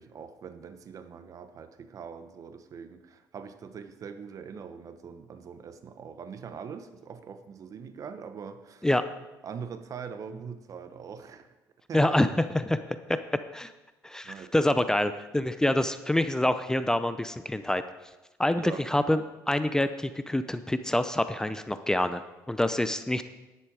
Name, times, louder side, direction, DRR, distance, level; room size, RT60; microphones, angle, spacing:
voice 1, 0.0-8.9 9.4-11.5 11.9-12.2 14.2-14.5 18.6-18.9, right 6 dB, 50° right, 10 dB, 1.0 m, -42 dB
voice 2, 11.9-12.8 13.1-13.2 13.5-13.7 14.0-17.8 18.4-23.2, left 1 dB, 10° left, 11 dB, 0.6 m, -26 dB
11.0 x 10.0 x 4.8 m, 1.1 s
cardioid pair, 90°, 7 cm